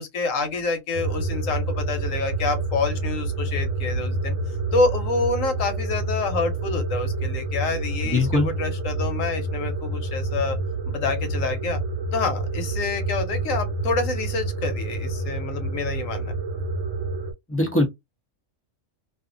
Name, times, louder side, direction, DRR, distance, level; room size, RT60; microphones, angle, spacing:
voice 1, 0.0-4.3 4.7-10.6 10.9-11.8 12.1-16.3, left 3 dB, 85° left, 1.1 m, -27 dB
sound 1, 0.9-17.3, right 2 dB, 75° right, 1.0 m, -28 dB
voice 2, 8.0-8.5 17.5-17.9, left 2 dB, 15° left, 0.5 m, -21 dB
2.5 x 2.4 x 2.5 m
omnidirectional pair, 1.3 m